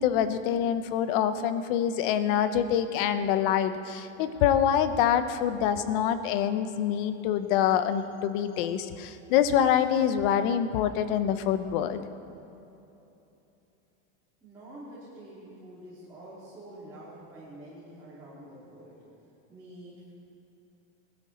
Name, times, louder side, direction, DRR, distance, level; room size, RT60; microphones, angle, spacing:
voice 1, 0.0-12.0, left 9 dB, 45° left, 11 dB, 0.8 m, -25 dB
voice 2, 14.4-19.0 19.5-20.1, right 1 dB, 10° right, -11 dB, 3.2 m, -47 dB
21.0 x 12.5 x 4.3 m, 2.9 s
supercardioid pair, 170°, 35 cm